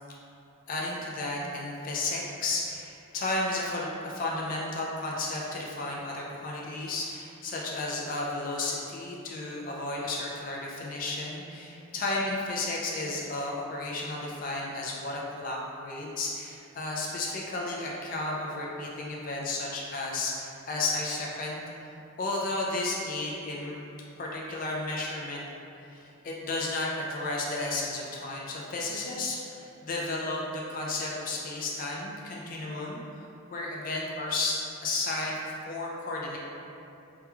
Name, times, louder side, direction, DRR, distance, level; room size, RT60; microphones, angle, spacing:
voice 1, 0.7-21.6 22.2-23.8 24.2-25.4 25.9-33.0 33.5-35.4 35.7-36.4, left 2 dB, 40° left, -3 dB, 0.3 m, -33 dB
2.3 x 2.2 x 2.9 m, 2.8 s
head